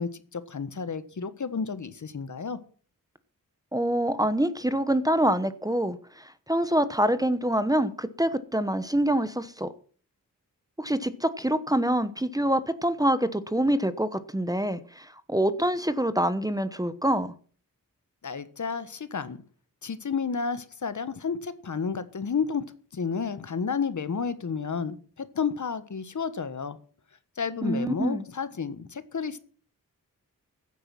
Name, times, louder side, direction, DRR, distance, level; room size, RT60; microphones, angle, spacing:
voice 1, 0.0-2.6 18.2-19.4 19.8-22.6 22.9-26.8 27.4-29.4, left 5 dB, 55° left, 1.4 m, -31 dB
voice 2, 3.7-9.7 10.8-17.3 27.6-28.2, right 1 dB, 10° right, 1.0 m, -26 dB
15.5 x 9.1 x 5.9 m
wide cardioid pair, 80°, 35 cm